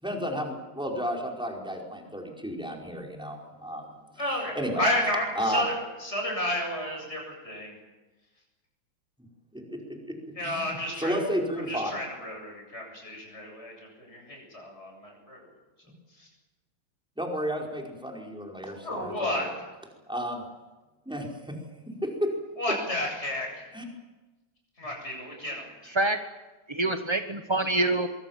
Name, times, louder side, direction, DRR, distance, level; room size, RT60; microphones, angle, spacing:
voice 1, 0.0-3.9 4.5-4.8 5.4-5.6 9.5-10.1 10.4-12.0 17.2-19.5 20.1-20.4 21.0-21.6 22.0-22.3 23.7-23.8, equal, ahead, 0 dB, 4.9 m, -32 dB
voice 2, 4.2-5.7 6.0-7.7 10.4-11.2 11.7-15.4 16.2-16.3 18.8-19.5 22.6-23.6 24.8-25.6, left 1 dB, 30° left, 0 dB, 8.2 m, -31 dB
voice 3, 25.8-26.2 26.7-28.1, right 2 dB, 25° right, 6 dB, 0.6 m, -26 dB
24.5 x 23.0 x 7.5 m, 1.1 s
omnidirectional pair, 2.3 m